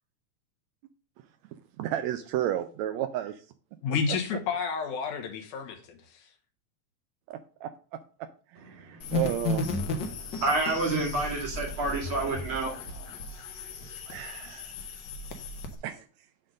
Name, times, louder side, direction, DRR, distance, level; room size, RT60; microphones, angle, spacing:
voice 1, 1.8-3.4 7.3-7.7 8.2-9.6 14.1-14.7 15.8-16.1, right 11 dB, 80° right, 1.7 m, -32 dB
voice 2, 3.8-6.0, left 5 dB, 80° left, 2.7 m, -30 dB
voice 3, 8.7-9.2 10.1-12.8, right 2 dB, 45° right, 2.8 m, -29 dB
sound 1, 9.0-15.8, left 2 dB, 65° left, 1.1 m, -35 dB
7.7 x 3.8 x 6.3 m
omnidirectional pair, 3.4 m